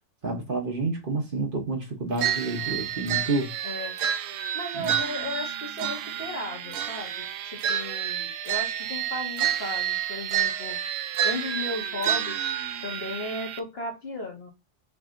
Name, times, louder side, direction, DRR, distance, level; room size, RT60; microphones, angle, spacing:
voice 1, 0.2-3.5 4.7-4.9, right 3 dB, 45° right, 1.0 m, -29 dB
sound 1, 2.2-13.6, right 10 dB, 80° right, 0.9 m, -29 dB
voice 2, 3.6-3.9 4.5-10.8 11.2-12.5 12.8-14.5, left 1 dB, 50° left, 1.7 m, -35 dB
5.7 x 2.7 x 2.5 m
omnidirectional pair, 1.3 m